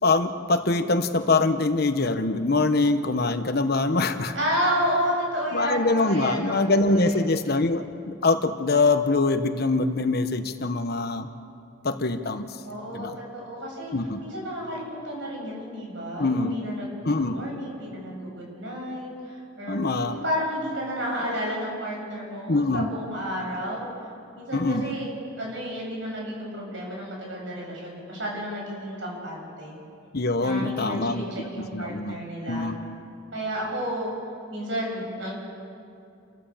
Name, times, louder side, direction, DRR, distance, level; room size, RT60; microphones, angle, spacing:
voice 1, 0.0-4.3 5.5-11.3 11.8-12.5 12.9-13.2 13.9-14.2 16.2-16.5 17.0-17.4 19.7-20.2 22.5-22.9 24.5-24.9 30.1-31.2 31.6-32.2 32.5-32.8, left 3 dB, 55° left, 9 dB, 1.1 m, -24 dB
voice 2, 4.3-7.2 12.6-13.9 14.2-23.9 24.4-29.7 30.4-32.7 33.3-34.1 34.5-35.3, equal, 70° right, -2 dB, 7.4 m, -31 dB
29.5 x 14.5 x 7.3 m, 2.6 s
head